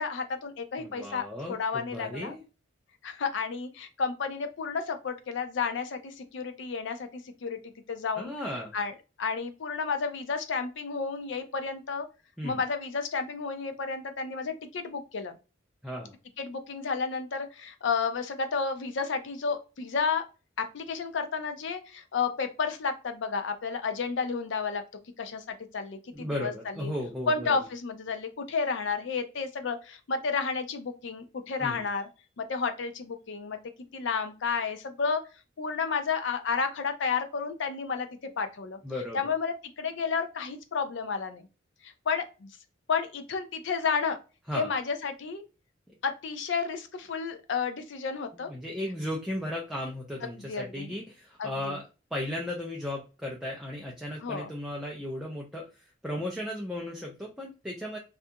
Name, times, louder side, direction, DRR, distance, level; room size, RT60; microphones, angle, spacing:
voice 1, 0.0-2.3 3.0-7.1 7.4-8.3 8.7-8.9 9.2-12.1 12.4-15.4 16.4-20.2 20.6-24.8 25.2-26.9 27.3-32.0 32.4-33.6 33.9-35.2 35.6-38.1 38.4-38.8 39.1-41.5 41.8-42.5 42.9-44.2 44.5-45.4 46.0-48.5 50.5-50.9 51.4-51.7 54.2-54.5, left 5 dB, 60° left, 8 dB, 0.4 m, -31 dB
voice 2, 0.8-2.4 8.2-8.7 12.4-12.6 15.8-16.1 26.1-27.6 31.6-31.8 38.8-39.3 44.5-44.7 48.3-51.8 52.1-58.0, left 1 dB, ahead, -2 dB, 0.3 m, -35 dB
2.5 x 2.3 x 2.6 m, 0.31 s
head